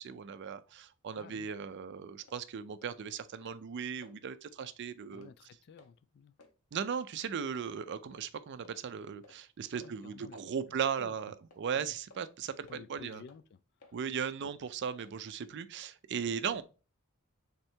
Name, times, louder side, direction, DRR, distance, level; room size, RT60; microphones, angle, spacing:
voice 1, 0.0-5.3 6.7-13.2 13.9-16.6, right 7 dB, 55° right, 0.4 m, -37 dB
voice 2, 1.2-1.5 5.1-6.3 9.7-10.4 10.7-11.1 11.7-11.9 12.7-13.6 14.4-14.5, left 5 dB, 50° left, 0.3 m, -53 dB
sound 1, 1.7-1.8 2.2-2.4 2.8-3.0 3.3-3.7 4.0-4.2 4.6-4.8 5.2-5.3 5.8-5.9 6.4-6.5 7.0-7.1 7.5-7.7 8.1-8.3 8.6-8.8 9.2-9.4 9.8-9.9 10.3-10.5 10.9-11.1 11.5-11.6 12.1-12.3 12.7-12.8 13.3-13.4 13.8-14.0 14.4-14.6 15.0-15.2, left 3 dB, 75° left, 0.8 m, -59 dB
3.6 x 3.3 x 4.3 m
head